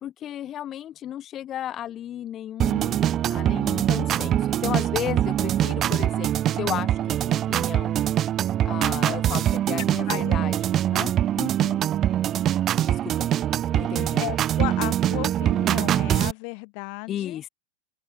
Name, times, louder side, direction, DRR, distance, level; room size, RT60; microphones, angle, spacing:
voice 1, 0.0-7.9 8.6-11.1 12.8-13.3 13.7-14.2 17.1-17.5, left 11 dB, 30° left, 2.4 m, -34 dB
sound 1, 2.6-16.3, right 11 dB, 30° right, 1.2 m, -23 dB
voice 2, 9.8-10.4 11.4-11.8 14.0-17.4, left 40 dB or more, 45° left, 3.1 m, -34 dB
open air
figure-of-eight pair, 90°, 0 cm